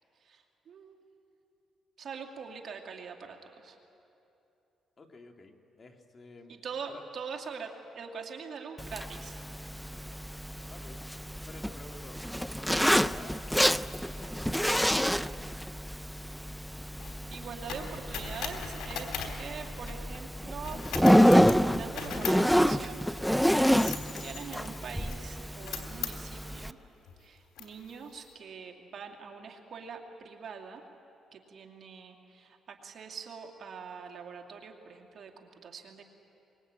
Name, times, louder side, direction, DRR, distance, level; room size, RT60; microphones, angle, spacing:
voice 1, 0.2-1.0 2.0-3.8 6.6-9.4 17.3-20.8 21.5-23.1 23.4-26.8 27.2-30.8 31.3-36.0, right 6 dB, 55° right, 2 dB, 2.6 m, -43 dB
voice 2, 5.0-6.5 6.9-7.0 10.7-11.0 11.5-12.2 12.5-15.5, left 3 dB, 35° left, 3 dB, 2.3 m, -52 dB
Zipper (clothing), 8.8-26.7, equal, ahead, 0.5 m, -28 dB
sound 1, 16.0-20.2 20.6-26.5 27.1-27.2 27.6-28.2, left 7 dB, 85° left, 3.3 m, -41 dB
24.5 x 22.5 x 9.0 m, 2.9 s
cardioid pair, 90°, 0 cm